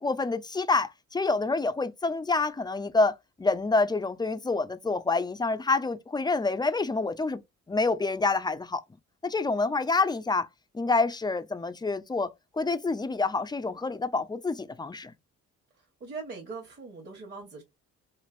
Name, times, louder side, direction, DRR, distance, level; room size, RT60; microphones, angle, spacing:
voice 1, 0.0-7.4 7.7-8.8 9.2-10.5 10.7-12.3 12.5-15.1, left 3 dB, 15° left, 0.4 m, -27 dB
voice 2, 16.0-17.6, right 4 dB, 35° right, 1.1 m, -40 dB
3.2 x 2.5 x 2.5 m
cardioid pair, 90°, 30 cm